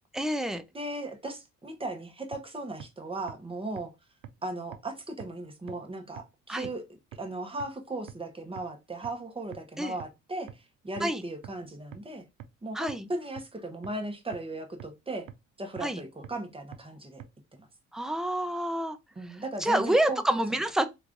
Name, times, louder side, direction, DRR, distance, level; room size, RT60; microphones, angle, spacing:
voice 1, 0.1-0.6 6.5-6.7 9.8-9.9 11.0-11.2 12.7-13.0 15.8-16.0 17.9-19.0 19.6-20.9, right 1 dB, ahead, 0.5 m, -27 dB
voice 2, 0.7-3.9 4.4-6.8 7.2-12.2 12.6-15.3 15.6-17.2 17.6-17.7 19.2-20.4, right 2 dB, 20° right, 0.9 m, -37 dB
sound 1, 2.3-2.4 2.8-2.9 3.3-3.4 3.8-3.9 4.2-4.3 4.7-4.8 5.2-5.3 5.7-5.8 6.2-6.3 6.6-6.7 7.1-7.2 7.6-7.7 8.1-8.2 8.6-8.7 9.0-9.1 9.5-9.6 10.0-10.1 10.5-10.6 11.0-11.1 11.4-11.5 11.9-12.0 12.4-12.5 12.9-13.0 13.4-13.5 13.8-13.9 14.3-14.4 14.8-14.9 15.3-15.4 15.8-15.9 16.2-16.3 16.7-16.8 17.2-17.3, right 11 dB, 85° right, 0.5 m, -43 dB
3.1 x 2.5 x 3.7 m
cardioid pair, 90°, 30 cm